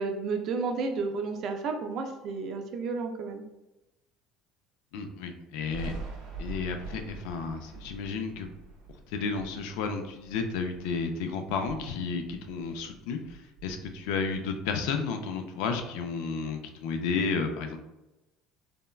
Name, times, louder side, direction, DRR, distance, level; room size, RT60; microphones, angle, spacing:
voice 1, 0.0-3.4, right 4 dB, 45° right, 5 dB, 0.4 m, -32 dB
voice 2, 4.9-5.9 6.4-8.5 9.1-17.8, left 5 dB, 80° left, 6 dB, 0.3 m, -32 dB
Thunder, 5.7-11.1 11.5-13.0 13.2-14.9, right 3 dB, 80° right, 0.8 m, -44 dB
3.4 x 2.1 x 2.2 m, 1.0 s
cardioid pair, 150°, 0 cm